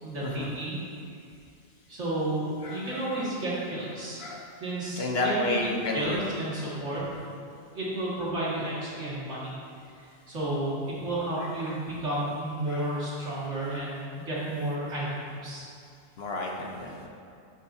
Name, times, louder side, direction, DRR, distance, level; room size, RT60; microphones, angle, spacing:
voice 1, 0.0-0.8 1.9-4.3 4.6-5.6 5.9-7.0 7.7-9.5 10.3-15.6, right 1 dB, 65° right, -8 dB, 2.5 m, -32 dB
voice 2, 2.6-3.3 4.2-4.5 5.0-6.4 7.0-7.2 11.4-11.8 12.7-12.9 16.2-17.1, left 2 dB, 55° left, 0 dB, 1.0 m, -32 dB
11.5 x 7.3 x 2.8 m, 2.4 s
omnidirectional pair, 1.3 m